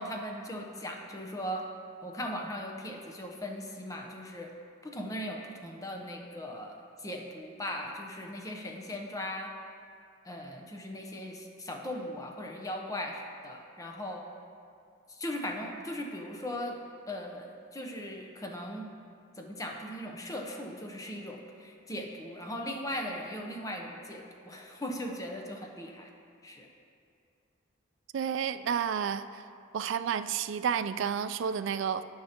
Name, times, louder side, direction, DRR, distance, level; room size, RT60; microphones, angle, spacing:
voice 1, 0.0-1.7 2.0-4.5 4.8-9.5 10.2-14.2 15.1-16.8 17.1-18.9 19.4-26.1 26.4-26.7, left 1 dB, 15° left, 2 dB, 0.7 m, -38 dB
voice 2, 28.1-29.4 29.7-32.0, right 7 dB, 65° right, 12 dB, 0.3 m, -31 dB
10.5 x 9.7 x 2.9 m, 2.4 s
head